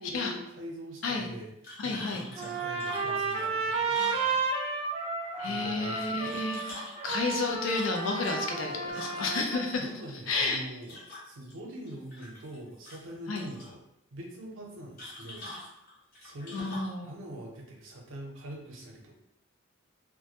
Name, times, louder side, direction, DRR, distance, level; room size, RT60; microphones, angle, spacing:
voice 1, 0.0-1.5 1.8-4.7 5.4-6.4 9.8-11.0 11.2-13.8 14.1-15.5 16.2-19.1, right 1 dB, 80° right, 0 dB, 0.6 m, -44 dB
sound 1, 1.6-4.8 6.0-9.5 10.8-11.5 11.9-12.6 12.8-13.7 15.0-17.0, left 2 dB, 45° left, 0.8 m, -45 dB
voice 2, 1.8-2.2 5.4-9.8 10.3-10.6 13.3-13.4 16.5-17.1, left 3 dB, 85° left, 2 dB, 0.5 m, -31 dB
Trumpet, 2.4-9.7, right 4 dB, 30° right, 0.3 m, -32 dB
2.1 x 2.0 x 2.8 m, 0.80 s
head